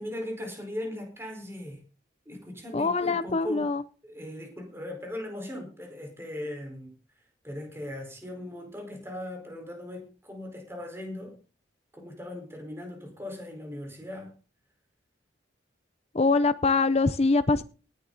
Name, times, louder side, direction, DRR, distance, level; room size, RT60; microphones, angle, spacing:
voice 1, 0.0-1.8 2.2-3.7 4.0-11.4 11.9-14.3, left 1 dB, 15° right, 4.6 m, -39 dB
voice 2, 2.7-3.8 16.1-17.6, left 3 dB, 35° left, 0.6 m, -23 dB
19.0 x 10.0 x 4.1 m
head